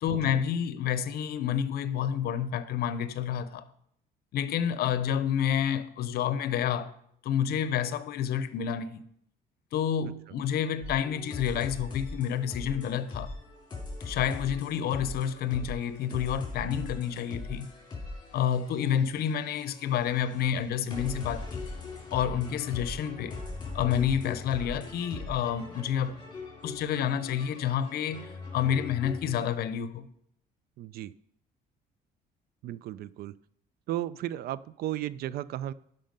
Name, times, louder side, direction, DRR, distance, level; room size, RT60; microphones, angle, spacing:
voice 1, 0.0-3.6 4.3-6.9 7.2-9.0 9.7-13.3 14.0-17.7 18.3-21.6 22.1-23.4 23.7-26.2 26.6-30.1, left 9 dB, 70° left, 0.7 m, -29 dB
sound 1, 10.8-29.4, left 3 dB, 25° left, 3.6 m, -41 dB
voice 2, 30.8-31.1 32.6-33.3 33.9-35.7, right 13 dB, 65° right, 0.4 m, -35 dB
11.5 x 5.5 x 5.2 m
cardioid pair, 110°, 17 cm